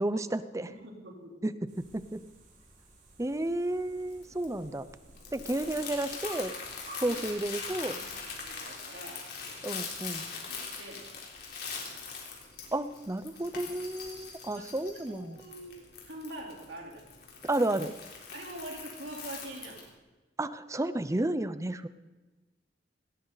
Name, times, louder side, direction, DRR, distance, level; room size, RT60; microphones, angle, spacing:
voice 1, 0.0-0.7 1.4-2.2 3.2-4.9 5.3-6.5 7.0-8.0 9.6-10.3 12.7-15.4 17.4-17.9 20.4-21.9, right 1 dB, 15° right, 14 dB, 0.6 m, -32 dB
voice 2, 0.7-1.5 5.4-5.5 7.1-7.2 8.0-9.3 10.5-11.1 14.6-14.7 15.1-15.8 16.0-17.0 18.3-19.8, right 1 dB, 85° right, 0 dB, 3.7 m, -44 dB
sound 1, 1.7-8.5, right 1 dB, 45° right, 4.7 m, -53 dB
Crumpling crinkling, 3.5-19.9, left 5 dB, 65° left, 3.8 m, -42 dB
18.5 x 18.0 x 4.1 m, 1.2 s
head